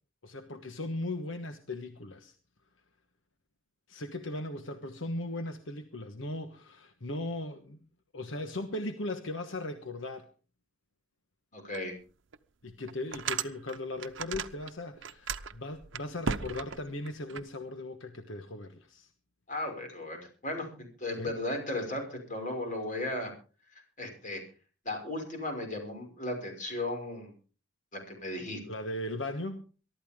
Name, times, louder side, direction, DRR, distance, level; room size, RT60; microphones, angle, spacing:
voice 1, 0.2-2.3 3.9-7.8 8.1-10.3 12.6-19.1 21.2-21.3 28.6-29.6, left 2 dB, 75° left, 8 dB, 1.3 m, -38 dB
voice 2, 11.5-11.9 19.5-23.3 24.0-24.4 24.8-27.3 27.9-28.6, left 1 dB, 40° left, 3 dB, 5.8 m, -36 dB
sound 1, 11.7-11.8 12.3-12.4 12.9-14.7 15.0-17.4, right 6 dB, 70° right, 0.8 m, -36 dB
22.5 x 12.5 x 3.7 m, 0.37 s
head